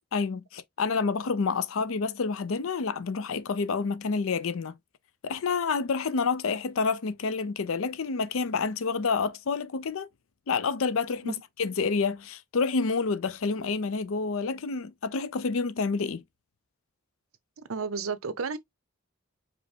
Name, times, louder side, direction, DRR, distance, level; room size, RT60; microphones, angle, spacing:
voice 1, 0.0-4.7 5.2-10.1 10.5-16.2, left 4 dB, 75° left, 0.5 m, -28 dB
voice 2, 17.6-18.6, right 5 dB, 80° right, 0.7 m, -32 dB
5.2 x 2.0 x 4.3 m
head